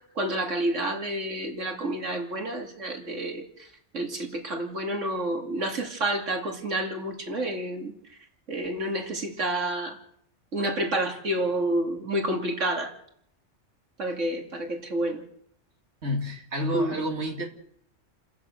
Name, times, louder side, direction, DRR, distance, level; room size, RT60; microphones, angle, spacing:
voice 1, 0.2-7.9 8.5-10.0 10.5-12.9 14.0-15.2 16.7-17.0, right 1 dB, 85° right, 2.9 m, -29 dB
voice 2, 16.0-17.5, equal, 65° right, 2.8 m, -29 dB
29.0 x 15.5 x 6.5 m
omnidirectional pair, 1.3 m